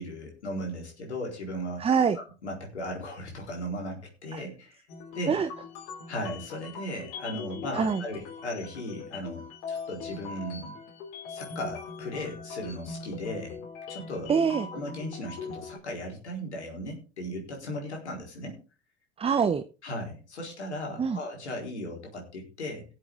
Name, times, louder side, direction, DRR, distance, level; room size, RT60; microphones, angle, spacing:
voice 1, 0.0-1.8 2.1-4.8 5.1-5.4 6.1-10.8 11.3-13.6 13.9-14.3 14.7-18.6 19.8-22.8, equal, 85° left, 0 dB, 4.2 m, -37 dB
voice 2, 1.8-2.2 4.3-4.4 5.3-5.5 7.7-8.0 14.3-14.7 19.2-19.6 21.0-21.2, right 6 dB, 15° right, 11 dB, 0.7 m, -24 dB
sound 1, 4.9-15.8, left 4 dB, 60° left, 3.0 m, -41 dB
19.0 x 7.6 x 3.6 m, 0.34 s
hypercardioid pair, 80°, 33 cm